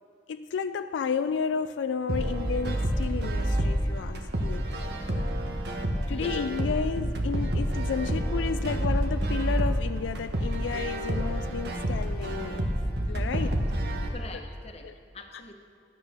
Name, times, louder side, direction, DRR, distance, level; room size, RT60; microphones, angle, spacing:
voice 1, 0.3-4.7 5.0-5.1 6.1-12.6 13.1-13.6 14.3-14.5 14.8-14.9, left 6 dB, 85° left, 10 dB, 0.3 m, -32 dB
sound 1, 2.1-14.1, right 1 dB, 65° right, 1.3 m, -28 dB
voice 2, 14.1-15.5, left 3 dB, 35° left, 4 dB, 1.1 m, -43 dB
12.5 x 9.7 x 6.6 m, 2.2 s
head